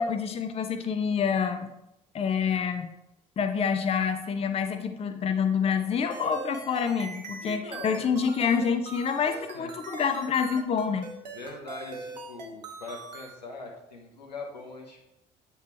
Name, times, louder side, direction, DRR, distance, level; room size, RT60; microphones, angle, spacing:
voice 1, 0.0-1.7 2.1-2.9 3.4-11.1, left 6 dB, 30° left, 8 dB, 0.6 m, -27 dB
sound 1, 6.1-13.4, right 4 dB, 85° right, 0.7 m, -42 dB
voice 2, 7.4-8.1 9.5-9.7 11.3-15.0, left 3 dB, 85° left, 1 dB, 0.9 m, -42 dB
8.1 x 3.1 x 4.5 m, 0.90 s
figure-of-eight pair, 55°, 21 cm